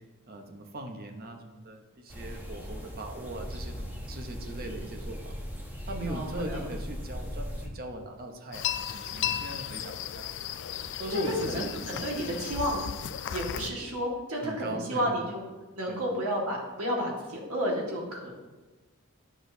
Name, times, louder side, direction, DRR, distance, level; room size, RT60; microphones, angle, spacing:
voice 1, 0.0-5.3 5.9-10.3 11.0-12.1 13.5-13.7 14.4-15.2 15.9-16.1, right 2 dB, 45° right, 4 dB, 0.9 m, -39 dB
sound 1, 2.1-7.7, equal, 10° right, 1.0 m, -38 dB
voice 2, 6.1-6.7 11.1-11.2 11.5-12.8 13.3-15.4 15.7-18.3, equal, 80° right, -2 dB, 1.8 m, -31 dB
sound 2, 8.5-13.7, left 10 dB, 55° left, 0.4 m, -35 dB
10.0 x 6.1 x 2.7 m, 1.2 s
head